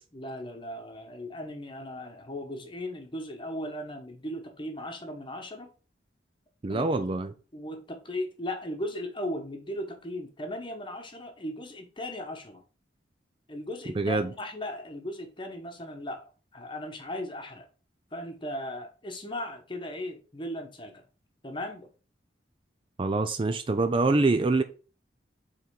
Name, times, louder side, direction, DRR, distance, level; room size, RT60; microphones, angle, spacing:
voice 1, 0.1-5.7 6.7-7.1 7.5-12.6 13.5-17.7 18.1-21.0 21.4-21.9, left 1 dB, 25° left, 1.0 m, -37 dB
voice 2, 6.6-7.3 14.0-14.3 23.0-24.6, right 3 dB, 30° right, 0.4 m, -25 dB
5.5 x 3.8 x 4.6 m
head